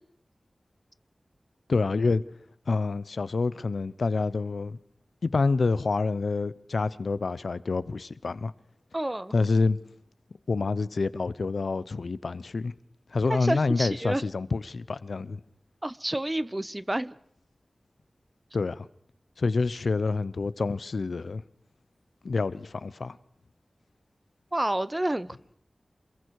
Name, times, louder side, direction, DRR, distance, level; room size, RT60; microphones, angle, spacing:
voice 1, 1.7-2.2 2.7-4.8 5.2-8.5 9.3-9.8 10.5-12.7 13.1-15.4 18.5-18.9 19.4-21.4 22.2-23.2, left 3 dB, 80° left, 0.7 m, -27 dB
voice 2, 8.9-9.3 13.3-14.2 15.8-17.1 24.5-25.5, right 1 dB, 20° right, 0.7 m, -29 dB
27.5 x 21.5 x 4.7 m
wide cardioid pair, 80°, 0 cm